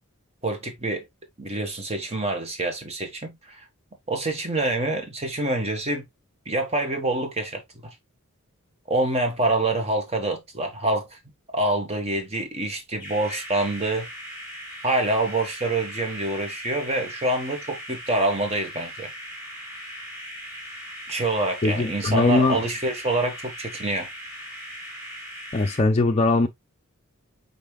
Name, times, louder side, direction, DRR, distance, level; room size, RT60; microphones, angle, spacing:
voice 1, 0.4-1.1 1.4-3.7 4.1-6.0 6.4-7.9 8.9-11.2 11.5-14.1 14.8-19.1 21.1-24.1, right 2 dB, 30° right, 1.4 m, -26 dB
sound 1, 13.0-25.8, equal, 10° right, 2.0 m, -39 dB
voice 2, 21.6-22.6 25.5-26.5, left 3 dB, 30° left, 0.5 m, -20 dB
5.5 x 4.1 x 2.3 m
head